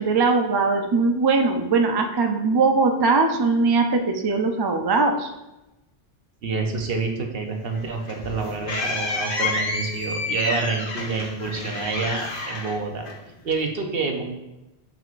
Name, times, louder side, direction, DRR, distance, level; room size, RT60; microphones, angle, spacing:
voice 1, 0.0-5.3, right 4 dB, 35° right, 5 dB, 0.4 m, -20 dB
voice 2, 6.4-13.1 13.4-14.2, right 4 dB, 65° right, 3 dB, 1.1 m, -27 dB
sound 1, 7.7-13.5, left 3 dB, 55° left, 1.1 m, -30 dB
6.9 x 6.1 x 2.5 m, 0.97 s
omnidirectional pair, 1.1 m